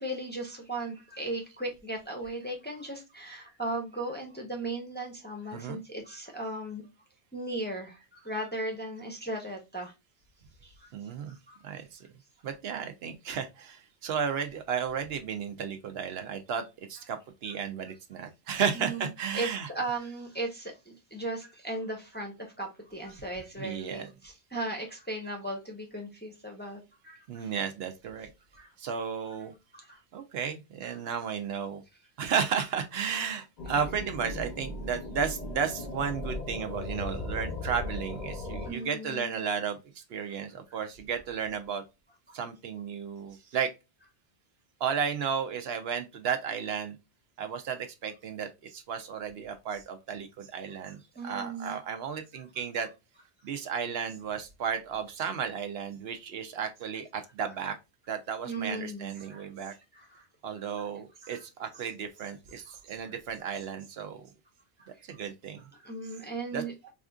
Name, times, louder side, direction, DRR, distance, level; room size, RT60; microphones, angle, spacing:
voice 1, 0.0-6.8 7.3-9.9 10.6-11.6 18.7-19.1 19.3-27.5 28.5-28.7 29.7-30.0 38.6-39.4 42.3-42.4 51.2-51.8 58.4-59.5 59.9-60.2 61.2-61.4 62.7-63.1 64.8-64.9 65.7-66.7, right 2 dB, 10° left, 0.6 m, -37 dB
voice 2, 10.9-11.4 11.6-12.1 12.4-20.0 23.6-24.1 27.3-28.3 28.8-29.5 30.1-31.8 32.2-41.8 42.3-43.7 44.8-47.0 47.4-52.9 53.4-57.8 58.1-59.7 60.4-64.3 65.1-65.6 66.5-66.6, right 7 dB, 70° right, 0.8 m, -33 dB
sound 1, 33.6-38.7, left 2 dB, 45° left, 0.6 m, -37 dB
4.2 x 2.5 x 2.3 m
omnidirectional pair, 1.1 m